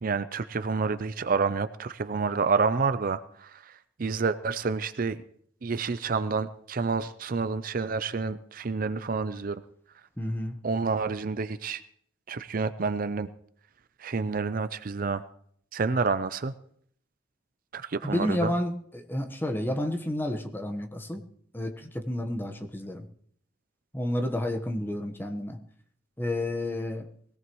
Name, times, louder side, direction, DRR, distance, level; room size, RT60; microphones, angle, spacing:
voice 1, 0.0-5.2 5.6-9.6 10.6-11.8 12.3-13.3 14.0-15.2 15.7-16.5 17.7-18.5, right 4 dB, 45° right, 12 dB, 0.5 m, -29 dB
voice 2, 10.2-10.5 18.0-21.2 21.5-23.0 23.9-25.6 26.2-27.1, left 1 dB, 10° left, 4 dB, 1.1 m, -30 dB
22.0 x 17.0 x 3.1 m, 0.65 s
head